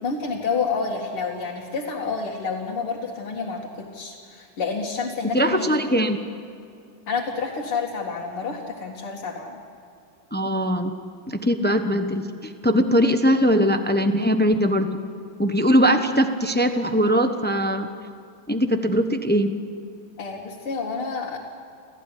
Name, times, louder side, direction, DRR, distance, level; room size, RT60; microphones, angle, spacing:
voice 1, 0.0-5.8 7.1-9.6 20.2-21.4, left 4 dB, 80° left, -3 dB, 3.0 m, -29 dB
voice 2, 5.3-6.2 10.3-10.9 11.3-14.9 15.4-17.9 18.5-19.5, equal, 15° left, 7 dB, 0.3 m, -21 dB
28.0 x 16.0 x 10.0 m, 2.4 s
omnidirectional pair, 2.4 m